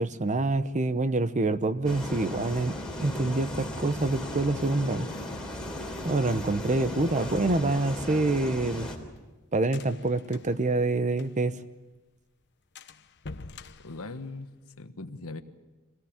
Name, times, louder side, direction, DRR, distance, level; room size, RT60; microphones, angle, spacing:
voice 1, 0.0-2.8 3.0-5.1 6.0-8.9 9.5-11.6, right 2 dB, 35° right, 12 dB, 0.8 m, -26 dB
sound 1, 1.8-9.0, left 1 dB, 5° left, 3.3 m, -36 dB
sound 2, 9.0-11.6 11.9-12.0 12.3-12.4 12.8-14.8, left 3 dB, 55° left, 1.0 m, -47 dB
voice 2, 13.8-15.4, left 3 dB, 70° left, 9 dB, 1.4 m, -40 dB
25.5 x 17.5 x 8.8 m, 1.2 s
head